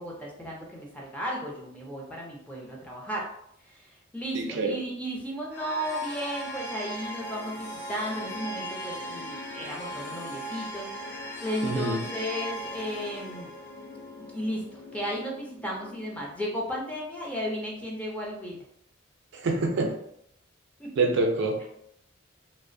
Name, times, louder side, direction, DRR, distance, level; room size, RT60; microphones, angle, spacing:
voice 1, 0.0-3.3 3.7-10.9 11.4-13.5 14.3-18.6 19.8-19.9 20.8-20.9, equal, 5° left, -3 dB, 0.5 m, -34 dB
voice 2, 4.3-4.8 11.6-12.0 19.3-20.0 21.0-21.6, right 3 dB, 65° right, 2 dB, 0.4 m, -26 dB
sound 1, 5.5-16.6, equal, 65° left, 0.7 m, -39 dB
2.4 x 2.0 x 2.5 m, 0.72 s
head